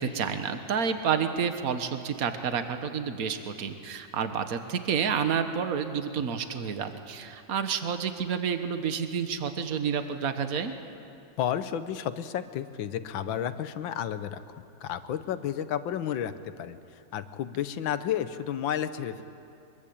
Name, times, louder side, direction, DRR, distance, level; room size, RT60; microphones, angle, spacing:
voice 1, 0.0-10.7, right 7 dB, 50° right, 8 dB, 1.6 m, -29 dB
voice 2, 11.4-14.4 14.8-19.2, left 10 dB, 85° left, 11 dB, 1.7 m, -32 dB
24.0 x 22.0 x 8.7 m, 2.6 s
omnidirectional pair, 2.0 m